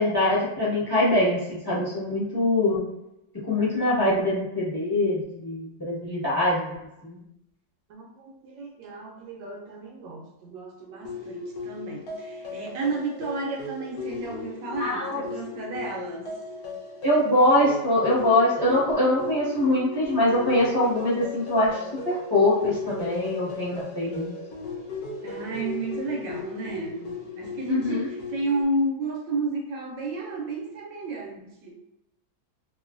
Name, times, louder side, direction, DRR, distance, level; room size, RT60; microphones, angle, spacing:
voice 1, 0.0-2.8 3.5-6.7 7.0-7.2 14.8-15.2 17.0-24.3 27.7-28.1, left 1 dB, 15° left, -9 dB, 1.0 m, -23 dB
voice 2, 7.9-16.3 25.2-31.8, right 2 dB, 75° right, 0 dB, 1.2 m, -32 dB
sound 1, 11.0-28.6, left 4 dB, 65° left, 0.9 m, -37 dB
3.0 x 2.5 x 2.4 m, 0.88 s
omnidirectional pair, 2.1 m